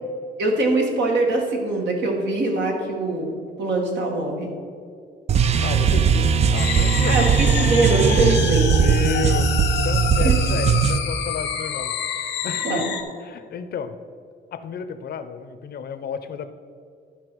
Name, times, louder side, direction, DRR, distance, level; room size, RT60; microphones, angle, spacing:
voice 1, 0.4-4.5 7.1-8.9 10.2-10.4 12.6-12.9, right 2 dB, 75° right, 1 dB, 1.9 m, -23 dB
sound 1, 5.3-11.0, right 7 dB, 35° right, 0.4 m, -19 dB
voice 2, 5.6-7.3 8.5-12.8 13.2-13.9 14.5-16.5, left 6 dB, 60° left, 11 dB, 0.6 m, -32 dB
sound 2, 6.5-13.0, left 9 dB, 85° left, 1.0 m, -28 dB
12.0 x 5.7 x 4.6 m, 2.3 s
cardioid pair, 135°, 18 cm